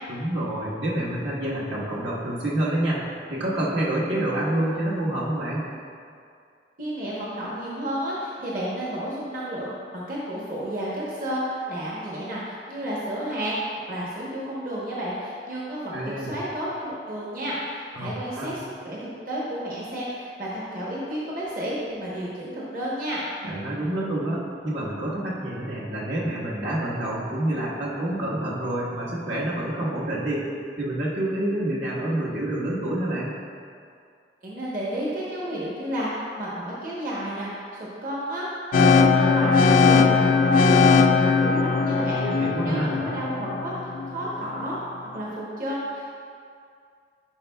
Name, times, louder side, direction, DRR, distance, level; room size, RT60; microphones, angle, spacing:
voice 1, 0.1-3.0 3.3-5.7 15.9-16.3 17.9-18.5 23.4-30.5 30.8-33.3 42.1-43.0, right 1 dB, 80° right, -7 dB, 1.4 m, -27 dB
voice 2, 6.8-13.6 13.9-23.2 34.4-38.5 38.8-42.2 42.6-46.2, equal, 50° right, -6 dB, 1.0 m, -32 dB
sound 1, 38.7-44.7, left 4 dB, 50° left, 0.4 m, -19 dB
10.5 x 4.5 x 2.3 m, 2.3 s
head